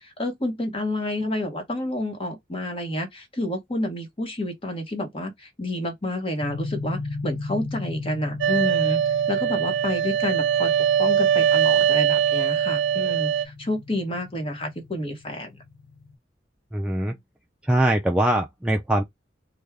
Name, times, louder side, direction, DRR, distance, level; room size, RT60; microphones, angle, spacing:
voice 1, 0.0-9.0 9.3-10.7 11.0-15.6, left 1 dB, 30° left, 1.0 m, -29 dB
sound 1, 6.4-16.2, left 3 dB, 50° left, 0.5 m, -37 dB
sound 2, 8.4-13.5, right 9 dB, 80° right, 0.5 m, -21 dB
voice 2, 16.7-17.2 17.7-19.0, right 1 dB, 5° right, 0.3 m, -22 dB
3.2 x 2.3 x 3.5 m
head